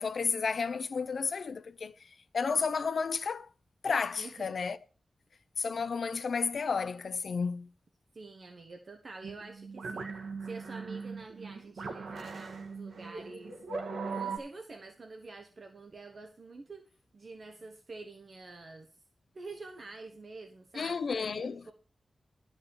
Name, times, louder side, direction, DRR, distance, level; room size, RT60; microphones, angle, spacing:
voice 1, 0.0-1.9 2.3-3.5 3.8-4.8 5.6-7.7 20.7-21.6, left 5 dB, 60° left, 0.6 m, -32 dB
voice 2, 4.2-4.6 8.1-13.6 14.1-18.9 19.3-21.7, right 3 dB, 45° right, 1.2 m, -47 dB
sound 1, 9.2-14.4, right 4 dB, 80° right, 1.7 m, -39 dB
11.5 x 5.5 x 6.9 m
wide cardioid pair, 170°, 0 cm